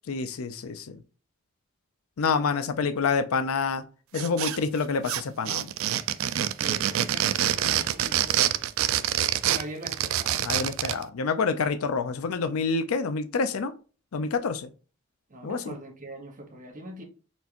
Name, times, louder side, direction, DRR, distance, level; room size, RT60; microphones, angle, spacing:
voice 1, 0.1-0.9 2.2-3.8 4.1-5.7 10.4-13.7 14.1-14.7 15.4-15.7, left 4 dB, 85° left, 0.5 m, -27 dB
sound 1, 4.1-4.8 5.0-11.0, right 11 dB, 70° right, 0.4 m, -26 dB
voice 2, 6.5-8.6 9.4-10.4 15.3-17.0, right 1 dB, 40° right, 1.1 m, -42 dB
4.4 x 3.3 x 2.9 m
head